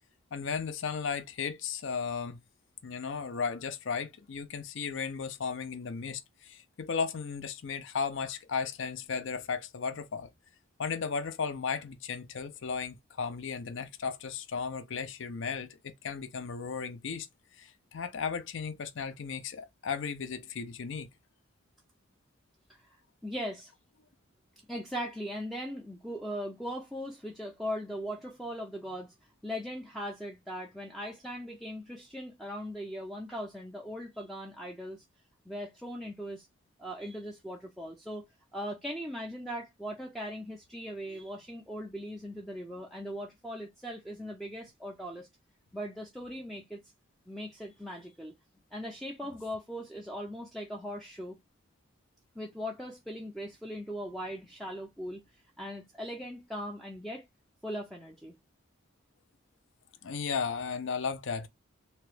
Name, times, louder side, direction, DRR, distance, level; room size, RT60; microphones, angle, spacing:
voice 1, 0.3-2.4 2.8-10.3 10.8-17.3 17.6-21.1 60.0-61.5, left 5 dB, 60° left, 0.5 m, -35 dB
voice 2, 23.2-23.7 24.7-35.0 35.5-36.5 36.8-38.2 38.5-45.3 45.7-46.8 47.3-48.3 48.7-51.4 52.4-55.2 55.6-57.3 57.6-58.4, equal, ahead, 0.4 m, -39 dB
2.9 x 2.2 x 3.1 m
head